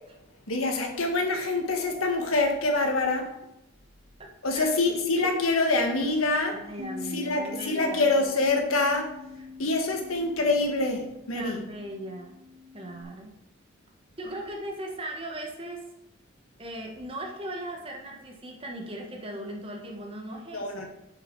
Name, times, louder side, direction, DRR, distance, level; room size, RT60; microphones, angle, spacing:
voice 1, 0.5-3.3 4.4-6.6 7.1-9.1 9.6-11.6 20.5-20.9, left 2 dB, 85° left, 3 dB, 1.5 m, -25 dB
voice 2, 4.2-4.7 6.5-8.0 9.3-9.4 11.3-12.3 12.7-13.3 14.2-15.8 16.6-20.9, right 1 dB, 25° right, 1 dB, 1.4 m, -38 dB
Bass guitar, 6.8-13.0, left 4 dB, 70° right, 2.8 m, -43 dB
7.2 x 6.8 x 4.7 m, 0.86 s
head